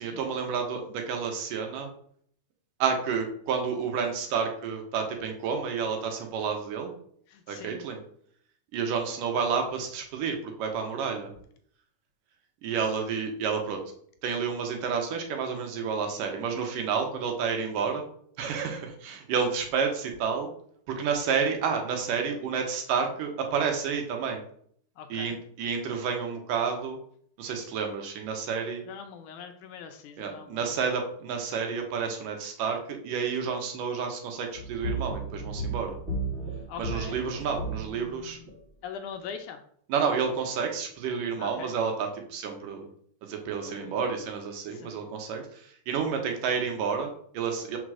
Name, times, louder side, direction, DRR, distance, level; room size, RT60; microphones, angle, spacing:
voice 1, 0.0-1.9 2.8-6.9 7.5-8.0 8.7-11.3 12.6-13.8 14.2-18.0 18.4-20.5 20.9-24.4 25.1-27.0 27.4-28.8 30.2-36.0 36.8-38.4 39.9-42.9 43.2-47.8, right 6 dB, 80° right, 3 dB, 2.7 m, -30 dB
voice 2, 7.3-7.8 25.0-25.4 28.9-30.7 36.7-37.2 38.8-39.6 41.4-41.7 43.6-44.0 44.7-45.0, left 7 dB, 75° left, 6 dB, 2.0 m, -42 dB
sound 1, 34.5-38.6, right 2 dB, 35° right, 1.1 m, -34 dB
5.1 x 4.9 x 6.2 m, 0.63 s
omnidirectional pair, 3.9 m